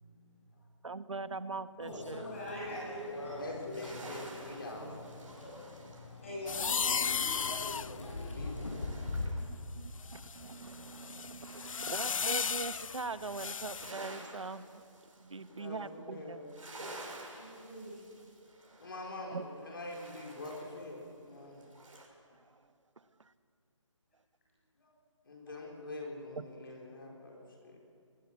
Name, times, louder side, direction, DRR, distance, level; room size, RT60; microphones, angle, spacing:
voice 1, 0.8-2.3 6.6-7.3 9.8-14.8 15.2-16.4 19.3-19.4 22.3-22.6 23.2-23.3 26.4-26.5, right 3 dB, 70° right, 12 dB, 1.2 m, -42 dB
Microwave oven, 1.8-9.3, left 2 dB, 70° left, 7.1 m, -42 dB
voice 2, 2.1-3.4 6.2-6.8 7.1-7.3 17.3-18.0, left 1 dB, 25° left, -6 dB, 6.8 m, -44 dB
sound 1, 2.3-9.6 9.9-12.7 13.0-22.1, right 2 dB, 85° right, 6.5 m, -52 dB
voice 3, 3.4-4.9 5.5-5.6 7.0-8.6 15.5-16.5 18.8-21.6 24.8-24.9 25.2-27.8, left 2 dB, 45° left, 0 dB, 4.3 m, -45 dB
sound 2, 6.5-9.4 10.0-13.9, left 6 dB, 90° left, 0.4 m, -35 dB
21.5 x 20.0 x 7.4 m, 2.3 s
hypercardioid pair, 180°, 17 cm